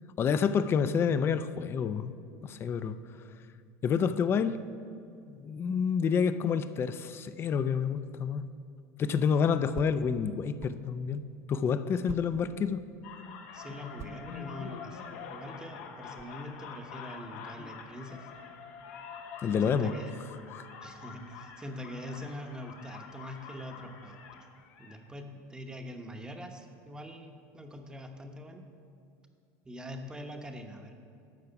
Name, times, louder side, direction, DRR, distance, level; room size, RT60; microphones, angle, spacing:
voice 1, 0.2-2.1 2.4-3.0 3.8-4.6 5.2-8.4 9.0-11.2 11.5-12.8 19.4-19.9 20.5-20.7, left 6 dB, 30° left, 13 dB, 0.4 m, -28 dB
sound 1, 8.6-10.8 11.3-11.4 12.0-12.9 13.9-16.4, right 8 dB, 35° right, 0.4 m, -47 dB
sound 2, 13.0-25.0, left 6 dB, 70° left, 1.1 m, -46 dB
voice 2, 13.5-18.3 19.5-20.1 20.8-24.2 24.8-28.7 29.6-30.9, equal, 10° right, 4 dB, 0.9 m, -43 dB
12.0 x 4.7 x 6.9 m, 2.5 s
supercardioid pair, 130°, 8 cm